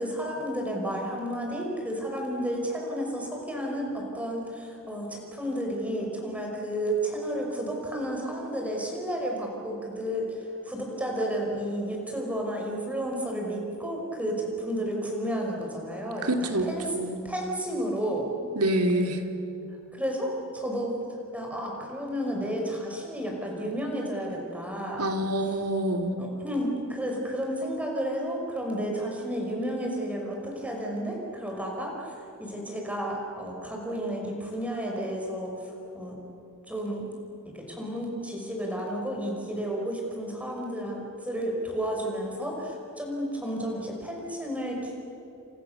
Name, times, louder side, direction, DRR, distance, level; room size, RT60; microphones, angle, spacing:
voice 1, 0.0-16.9 17.2-18.5 19.9-21.0 21.3-25.0 26.2-36.2 36.7-37.1 37.5-44.9, equal, 5° right, -1 dB, 5.5 m, -32 dB
voice 2, 16.2-17.2 18.5-19.2 25.0-26.2, right 1 dB, 85° right, 5 dB, 2.7 m, -26 dB
29.5 x 28.5 x 6.9 m, 2.9 s
head